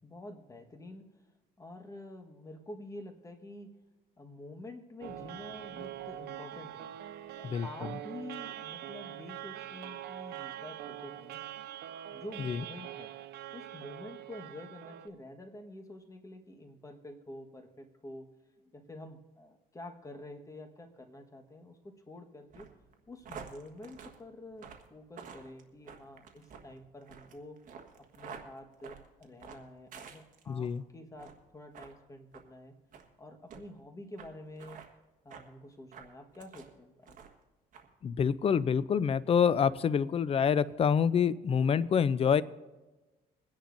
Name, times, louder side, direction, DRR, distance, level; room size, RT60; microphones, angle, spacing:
voice 1, 0.0-1.1 1.6-3.8 4.2-6.9 7.4-11.4 12.1-13.1 13.5-22.7 23.1-27.6 28.1-32.8 33.2-34.8 35.2-37.2, left 1 dB, 20° left, 4 dB, 1.4 m, -48 dB
sound 1, 5.0-15.1, right 12 dB, 75° right, 0.7 m, -43 dB
sound 2, 22.5-30.7 31.1-31.4 31.7-31.9 32.3-32.5 32.9-33.1 33.5-33.6 34.2-34.3 34.6-34.9 35.3-35.5 35.9-36.7 37.0-37.4 37.7-37.9, right 6 dB, 50° right, 1.5 m, -49 dB
voice 2, 30.5-30.8 38.0-42.4, left 7 dB, 35° left, 16 dB, 0.5 m, -27 dB
23.0 x 10.0 x 2.6 m, 1.1 s
cardioid pair, 110°, 17 cm